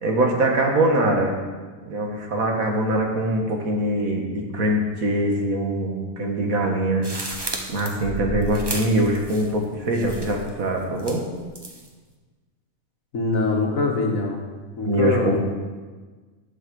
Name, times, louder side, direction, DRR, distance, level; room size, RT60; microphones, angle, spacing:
voice 1, 0.0-1.3 1.8-7.1 7.7-11.2 14.9-15.4, right 1 dB, 85° right, 1 dB, 2.1 m, -23 dB
sound 1, 7.0-9.7 9.9-10.5 11.0-11.9, right 2 dB, 20° right, 1.0 m, -33 dB
voice 2, 13.1-14.4 14.8-15.4, left 3 dB, 75° left, 1 dB, 2.0 m, -23 dB
12.0 x 6.5 x 6.9 m, 1.4 s
omnidirectional pair, 1.4 m